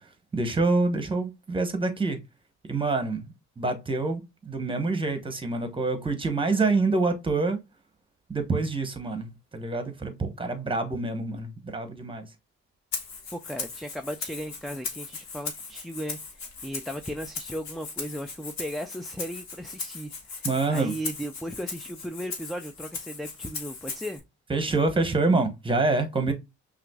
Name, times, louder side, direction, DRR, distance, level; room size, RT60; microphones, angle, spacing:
voice 1, 0.3-2.2 2.7-7.6 8.3-12.3 20.4-20.9 24.5-26.3, right 3 dB, 15° right, 1.0 m, -26 dB
Rattle (instrument), 12.9-24.2, left 4 dB, 65° left, 1.5 m, -38 dB
voice 2, 13.3-24.2, equal, ahead, 0.3 m, -36 dB
5.7 x 2.6 x 2.3 m
cardioid pair, 90°, 30 cm